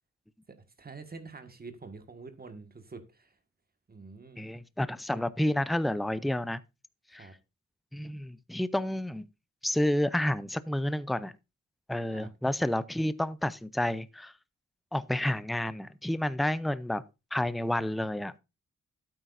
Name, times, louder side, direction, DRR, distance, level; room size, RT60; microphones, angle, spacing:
voice 1, 0.5-3.4 3.9-4.4 7.1-7.3 12.1-12.3, right 4 dB, 30° right, 1.6 m, -47 dB
voice 2, 4.4-6.6 7.1-7.3 7.9-9.3 9.6-11.3 11.9-14.3 14.9-17.0 17.3-18.3, left 1 dB, ahead, 0.5 m, -30 dB
12.5 x 8.9 x 2.6 m
wide cardioid pair, 120°, 30 cm